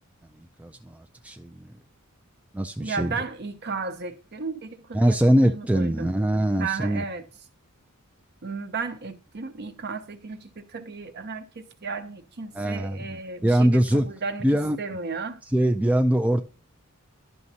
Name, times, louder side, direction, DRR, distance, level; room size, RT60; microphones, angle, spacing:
voice 1, 0.3-1.7 2.5-3.1 4.9-7.0 12.5-14.1 14.4-14.8 15.5-16.4, right 1 dB, 5° right, 0.3 m, -23 dB
voice 2, 2.8-6.1 6.4-7.2 8.4-14.5 14.8-15.4, right 4 dB, 50° right, 0.8 m, -34 dB
11.0 x 6.0 x 2.7 m
head